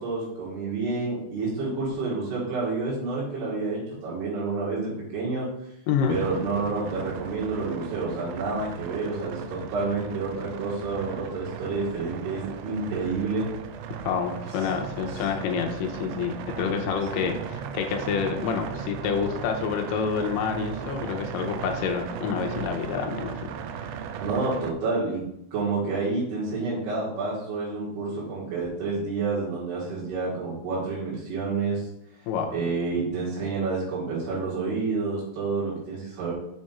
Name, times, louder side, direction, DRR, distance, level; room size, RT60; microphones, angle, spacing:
voice 1, 0.0-5.5 6.1-13.5 24.2-25.2 25.5-31.9 32.5-36.3, right 3 dB, 70° right, -9 dB, 3.8 m, -29 dB
sound 1, 6.1-24.7, right 7 dB, 90° right, 2.1 m, -37 dB
voice 2, 14.0-23.3 32.3-32.5, left 6 dB, 80° left, 3 dB, 2.6 m, -28 dB
7.3 x 5.0 x 4.2 m, 0.79 s
omnidirectional pair, 5.0 m